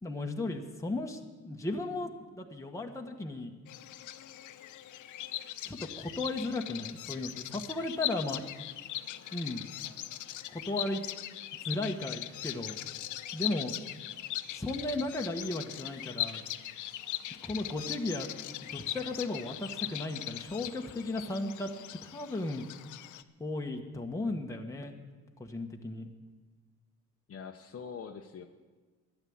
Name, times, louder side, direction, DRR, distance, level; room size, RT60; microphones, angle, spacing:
voice 1, 0.0-3.5 5.6-8.4 9.3-9.6 10.5-11.0 11.6-12.7 13.3-13.7 14.5-16.4 17.4-18.3 18.7-21.7 22.0-22.6 23.4-24.9 25.4-26.1, left 2 dB, 10° left, 1 dB, 1.3 m, -35 dB
Bird vocalization bird call bird song, 3.7-23.2, left 13 dB, 80° left, 0.7 m, -40 dB
voice 2, 27.3-28.5, left 6 dB, 50° left, 4 dB, 0.9 m, -43 dB
12.5 x 10.0 x 8.7 m, 1.3 s
cardioid pair, 90°, 30 cm